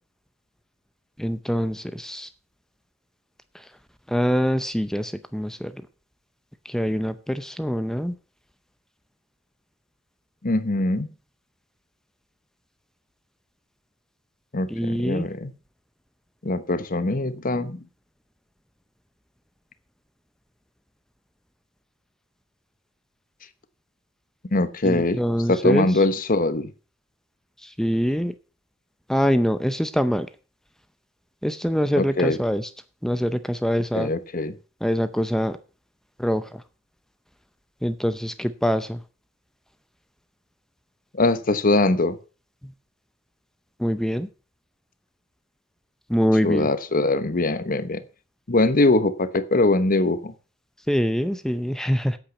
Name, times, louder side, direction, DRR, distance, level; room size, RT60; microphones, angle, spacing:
voice 1, 1.2-2.3 3.5-3.6 4.1-5.7 6.6-8.1 14.7-15.3 24.8-25.9 27.6-28.3 29.1-30.3 31.4-32.7 33.0-34.1 34.8-35.6 36.2-36.6 37.8-39.0 43.8-44.3 46.1-46.7 50.9-52.2, equal, 5° left, 11 dB, 0.6 m, -24 dB
voice 2, 10.4-11.1 14.5-15.5 16.4-17.8 24.5-25.2 25.5-26.7 32.0-32.4 33.9-34.6 41.1-42.2 46.4-48.0 48.5-50.3, left 2 dB, 45° left, 12 dB, 1.0 m, -22 dB
8.8 x 8.4 x 7.1 m, 0.36 s
head